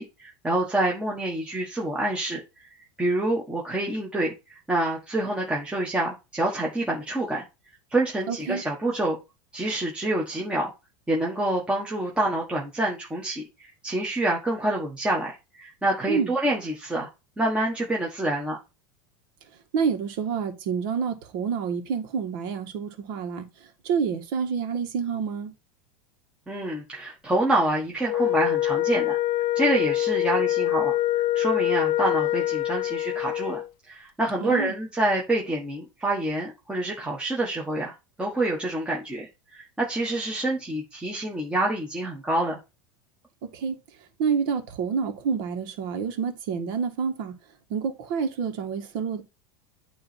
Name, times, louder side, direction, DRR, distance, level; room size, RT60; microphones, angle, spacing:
voice 1, 0.0-2.7 3.0-7.4 7.9-9.2 9.5-10.7 11.1-17.1 17.4-18.6 26.5-29.2 29.5-31.0 31.3-42.6, right 1 dB, 10° right, 1.5 m, -27 dB
voice 2, 8.3-8.6 16.1-16.3 19.7-23.5 23.8-25.5 34.4-34.7 43.5-43.7 44.2-47.3 47.7-49.2, right 6 dB, 60° right, 1.8 m, -28 dB
Wind instrument woodwind instrument, 28.0-33.7, left 14 dB, 50° left, 0.5 m, -25 dB
8.9 x 3.2 x 4.4 m
supercardioid pair, 140°, 11 cm